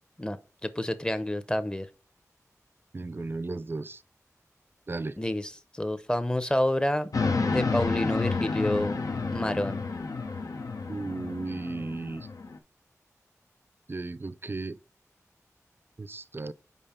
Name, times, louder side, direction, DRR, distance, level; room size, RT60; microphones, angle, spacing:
voice 1, 0.2-1.9 5.2-7.1 7.4-9.0 9.3-9.8, left 1 dB, 15° left, 0.7 m, -29 dB
voice 2, 2.9-4.0 4.9-5.1 10.9-12.3 13.9-14.8 16.0-16.5, right 3 dB, 40° right, 0.4 m, -35 dB
sound 1, 7.1-12.6, left 4 dB, 80° left, 0.7 m, -30 dB
5.4 x 4.7 x 4.3 m
wide cardioid pair, 65°, 6 cm